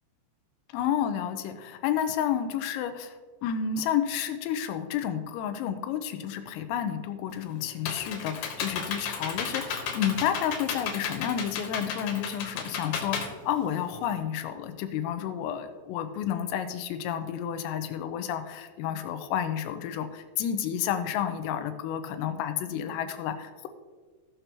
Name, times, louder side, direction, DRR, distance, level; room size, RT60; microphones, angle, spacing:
voice 1, 0.7-3.2 3.4-23.7, left 9 dB, 90° left, 8 dB, 3.4 m, -31 dB
Computer keyboard, 7.3-14.2, left 6 dB, 70° left, 3.2 m, -34 dB
16.0 x 6.7 x 2.9 m, 1.4 s
omnidirectional pair, 5.9 m